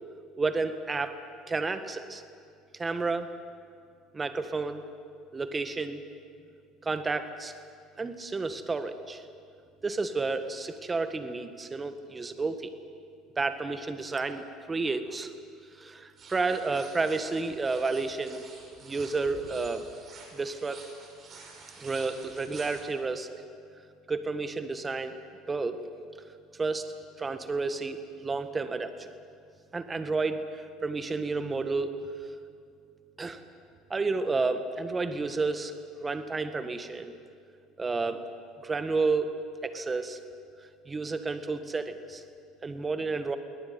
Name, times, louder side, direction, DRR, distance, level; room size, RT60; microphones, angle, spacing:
voice 1, 0.4-1.2 1.5-2.2 2.7-3.3 4.1-4.8 5.3-6.0 6.8-7.5 8.0-9.2 9.8-12.7 13.4-15.3 15.8-18.4 18.8-19.9 20.3-20.8 21.8-23.3 24.1-25.2 25.5-25.8 26.6-29.1 29.7-32.0 33.2-33.4 33.9-35.7 36.0-37.1 37.8-38.2 38.6-40.2 40.8-42.2 42.6-43.4, right 3 dB, 20° right, 9 dB, 1.7 m, -31 dB
sound 1, 16.2-22.8, right 4 dB, 35° right, 5.4 m, -49 dB
22.5 x 18.5 x 9.6 m, 2.3 s
supercardioid pair, 115°, 0 cm